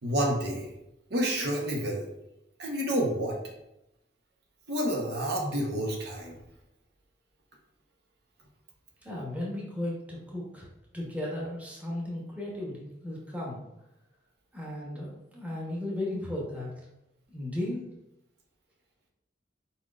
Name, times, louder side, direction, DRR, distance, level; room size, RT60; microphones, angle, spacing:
voice 1, 0.0-0.7 1.1-2.1 2.6-3.4 4.7-6.4, equal, 65° right, -1 dB, 0.9 m, -29 dB
voice 2, 9.0-10.7 10.9-13.6 14.5-16.7 17.3-17.8, left 1 dB, 10° right, -4 dB, 1.0 m, -35 dB
4.5 x 4.2 x 2.4 m, 0.87 s
head